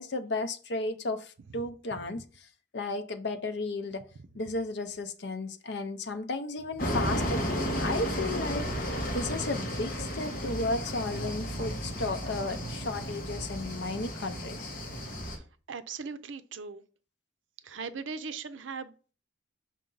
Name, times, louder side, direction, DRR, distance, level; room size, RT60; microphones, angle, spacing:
voice 1, 0.0-2.2 2.7-4.0 4.3-14.7, left 2 dB, 65° left, 0.6 m, -34 dB
sound 1, 6.8-15.4, equal, 45° left, 1.2 m, -33 dB
voice 2, 15.2-16.8 17.6-19.1, right 5 dB, 80° right, 0.6 m, -40 dB
5.4 x 5.1 x 3.9 m
head